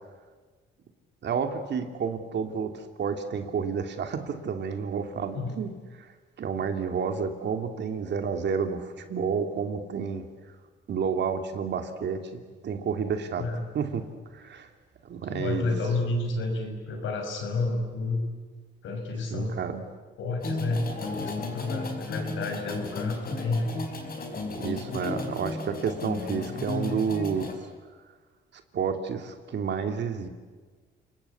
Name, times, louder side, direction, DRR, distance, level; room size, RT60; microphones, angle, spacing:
voice 1, 1.2-5.7 6.0-6.1 6.4-10.3 10.9-13.5 13.7-14.1 14.3-14.7 15.0-15.8 19.3-19.8 24.6-27.7 28.7-30.3, right 6 dB, 60° right, 7 dB, 2.7 m, -30 dB
voice 2, 15.3-18.3 18.8-19.6 20.2-23.7, left 2 dB, 75° left, 3 dB, 6.0 m, -30 dB
sound 1, 20.4-27.5, left 3 dB, 50° left, 5.0 m, -34 dB
29.5 x 20.0 x 8.4 m, 1.4 s
cardioid pair, 90°, 20 cm